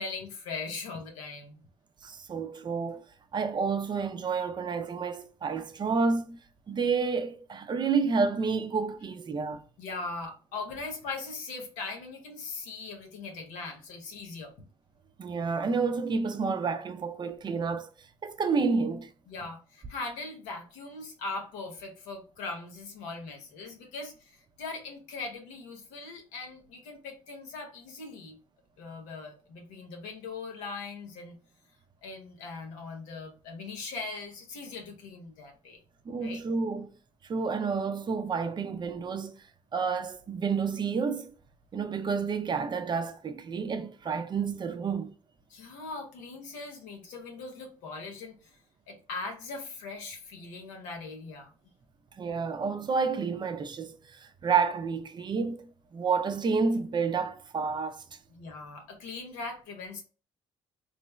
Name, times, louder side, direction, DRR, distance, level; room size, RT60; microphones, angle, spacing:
voice 1, 0.0-1.6 9.8-14.5 19.3-28.4 28.8-31.4 32.0-35.8 36.2-36.4 45.5-48.6 48.9-51.5 58.3-60.0, left 3 dB, 85° left, 0.9 m, -40 dB
voice 2, 2.0-3.0 3.3-6.4 6.7-9.6 15.2-17.9 18.2-19.1 36.1-36.9 37.3-39.3 39.7-41.3 41.7-45.1 52.2-55.7 55.9-58.0, right 5 dB, 35° right, 0.5 m, -29 dB
3.2 x 2.1 x 3.0 m
supercardioid pair, 65°, 13 cm